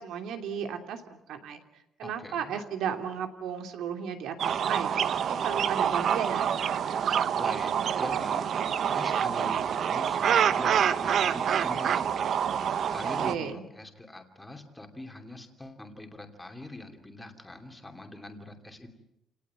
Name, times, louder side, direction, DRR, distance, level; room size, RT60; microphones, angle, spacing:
voice 1, 0.0-1.6 2.0-6.7 13.2-13.6, right 7 dB, 75° right, 6 dB, 3.0 m, -35 dB
voice 2, 2.0-2.5 7.3-18.9, left 2 dB, 10° left, 4 dB, 2.8 m, -44 dB
sound 1, 4.4-13.3, right 8 dB, 45° right, 1.0 m, -27 dB
29.0 x 18.5 x 9.5 m, 0.85 s
cardioid pair, 175°, 0 cm